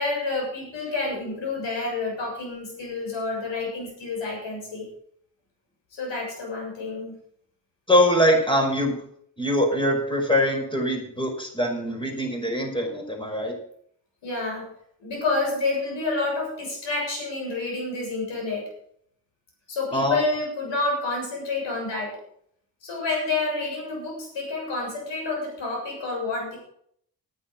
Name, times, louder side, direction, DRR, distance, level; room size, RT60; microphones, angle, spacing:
voice 1, 0.0-4.9 5.9-7.1 14.2-14.7 15.0-18.7 19.7-22.2 22.8-26.6, left 3 dB, 75° left, 0 dB, 7.0 m, -29 dB
voice 2, 7.9-9.0 9.4-13.5 19.9-20.2, equal, 10° left, 2 dB, 5.4 m, -23 dB
11.5 x 9.8 x 6.4 m, 0.64 s
hypercardioid pair, 40°, 44 cm